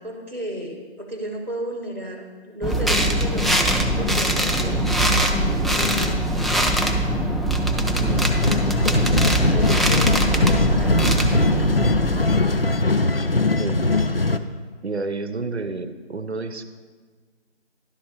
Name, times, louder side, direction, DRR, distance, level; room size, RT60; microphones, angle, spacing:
voice 1, 0.0-4.9 5.2-6.2 9.5-11.5, right 1 dB, 40° right, 1 dB, 0.9 m, -33 dB
sound 1, 2.6-12.8, right 1 dB, ahead, 0.4 m, -22 dB
voice 2, 7.8-8.2 9.5-9.8 13.6-13.8 14.8-16.6, right 3 dB, 70° right, 10 dB, 0.7 m, -30 dB
sound 2, 8.1-14.4, left 2 dB, 60° left, 0.5 m, -21 dB
11.0 x 4.0 x 6.3 m, 1.5 s
figure-of-eight pair, 180°, 34 cm